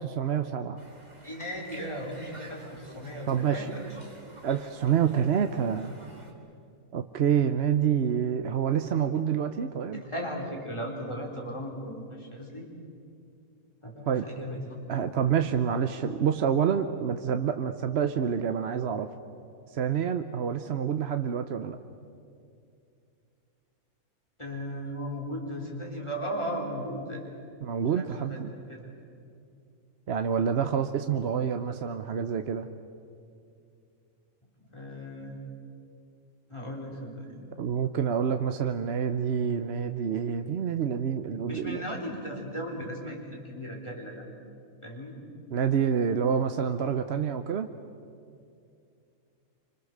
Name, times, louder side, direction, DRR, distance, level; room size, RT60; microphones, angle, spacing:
voice 1, 0.2-0.8 3.3-3.6 4.4-5.9 6.9-10.0 14.1-14.2 14.9-19.1 19.7-21.8 27.6-28.5 30.1-32.7 37.6-41.8 45.5-47.7, right 8 dB, 55° right, 8 dB, 0.9 m, -27 dB
Conversation, 0.8-6.3, right 1 dB, 30° right, 2.6 m, -50 dB
voice 2, 1.2-3.8 9.9-12.7 13.8-14.8 24.4-27.3 27.9-28.9 34.7-35.4 36.5-37.4 41.5-44.3 44.8-45.2, equal, 20° left, -1 dB, 3.9 m, -37 dB
26.0 x 25.5 x 6.7 m, 2.5 s
omnidirectional pair, 1.5 m